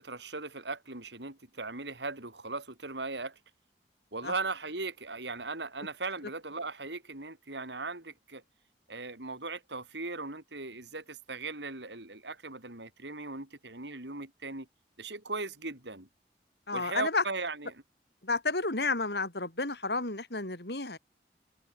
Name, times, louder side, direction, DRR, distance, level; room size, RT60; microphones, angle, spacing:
voice 1, 0.0-3.4 4.1-8.4 8.9-14.7 15.0-16.1 16.7-17.8, right 3 dB, 85° right, 5.1 m, -38 dB
voice 2, 16.7-17.2 18.2-21.0, left 3 dB, 70° left, 4.1 m, -31 dB
head